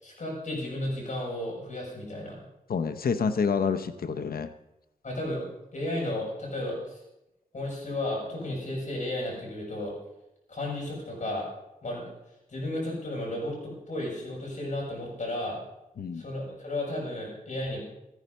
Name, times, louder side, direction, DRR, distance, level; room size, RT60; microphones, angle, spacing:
voice 1, 0.0-2.4 5.0-5.4 5.7-7.0 7.5-9.9 10.5-11.5 11.8-12.0 12.5-15.6 16.1-17.8, left 1 dB, 55° left, -3 dB, 6.1 m, -33 dB
voice 2, 2.7-4.5 16.0-16.2, left 5 dB, 90° left, 9 dB, 0.7 m, -28 dB
14.5 x 9.6 x 5.4 m, 0.89 s
wide cardioid pair, 110°, 15 cm